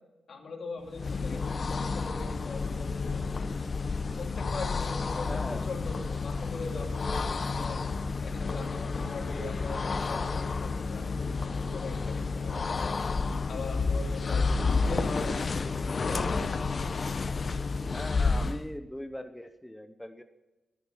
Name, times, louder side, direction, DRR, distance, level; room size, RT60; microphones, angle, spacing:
voice 1, 0.3-3.3 4.2-7.8 8.2-12.9 13.5-15.3 16.0-16.6, left 3 dB, 65° left, 2 dB, 2.6 m, -41 dB
sound 1, 0.9-18.7, left 4 dB, 45° left, 0.7 m, -30 dB
voice 2, 5.0-5.7 17.9-20.2, left 1 dB, 5° left, 8 dB, 0.7 m, -40 dB
sound 2, 6.7-6.8 7.2-7.3 7.7-7.9 8.2-8.4 8.7-8.8 9.2-9.3 9.7-9.8 10.2-10.3 10.7-10.8 11.2-11.3 11.7-11.9 12.2-12.4 12.8-12.9, left 4 dB, 80° left, 1.8 m, -51 dB
14.0 x 11.0 x 5.5 m, 1.0 s
wide cardioid pair, 105°, 0 cm